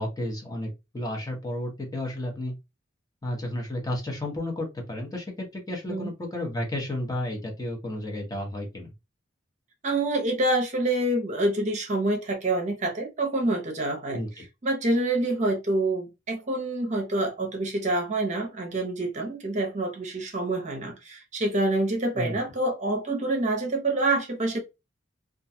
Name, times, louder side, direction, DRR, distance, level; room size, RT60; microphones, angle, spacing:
voice 1, 0.0-2.5 3.2-8.9 14.1-14.3 22.2-22.3, left 1 dB, 20° left, 0.7 m, -32 dB
voice 2, 9.8-14.2 14.6-24.6, right 2 dB, 40° right, 0.7 m, -27 dB
2.4 x 2.2 x 2.6 m
head